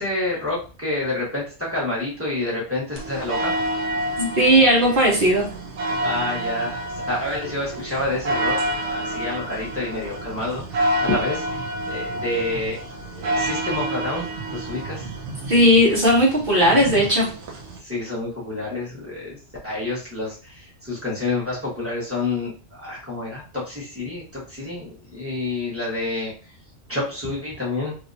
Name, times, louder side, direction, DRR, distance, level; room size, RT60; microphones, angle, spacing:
voice 1, 0.0-3.5 6.0-12.8 13.0-14.3 14.5-15.1 17.8-19.4 19.6-26.3 26.9-27.9, left 2 dB, 10° right, -6 dB, 1.2 m, -28 dB
sound 1, 3.0-17.8, right 1 dB, 80° right, 1.1 m, -29 dB
voice 2, 4.2-5.4 15.5-17.3, equal, 50° right, -3 dB, 1.2 m, -16 dB
3.1 x 2.8 x 2.6 m, 0.37 s
omnidirectional pair, 1.2 m